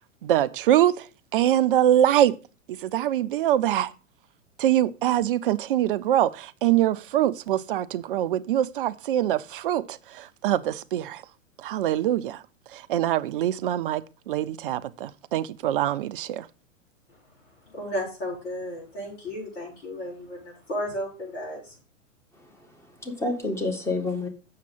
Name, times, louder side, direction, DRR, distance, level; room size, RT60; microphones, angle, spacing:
voice 1, 0.2-1.1 1.3-2.4 2.8-3.9 4.6-11.2 11.6-12.4 12.7-16.5, right 12 dB, 45° right, 0.6 m, -24 dB
voice 2, 17.1-21.8, equal, 60° left, 6.0 m, -34 dB
voice 3, 22.3-24.3, left 2 dB, 5° left, 1.7 m, -30 dB
7.4 x 6.6 x 5.6 m
figure-of-eight pair, 105°, 39 cm